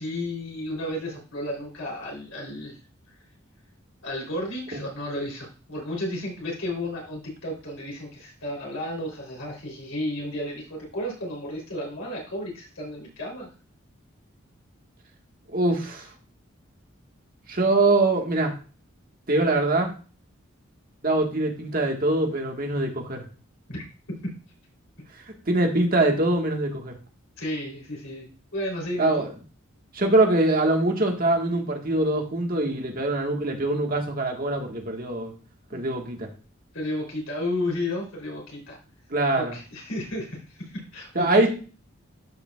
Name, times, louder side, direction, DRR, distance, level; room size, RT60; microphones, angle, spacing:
voice 1, 0.0-2.8 3.1-3.2 4.0-13.5 23.7-23.8 27.4-29.3 35.7-35.8 36.7-38.8 39.3-41.5, left 1 dB, 80° left, -1 dB, 3.3 m, -33 dB
voice 2, 15.5-16.1 17.5-18.5 19.3-19.9 21.0-23.3 25.5-26.9 29.0-29.3 29.9-35.3 35.7-36.3 39.1-39.5 41.1-41.5, right 2 dB, 45° right, 2 dB, 1.5 m, -23 dB
12.0 x 5.0 x 2.3 m, 0.36 s
head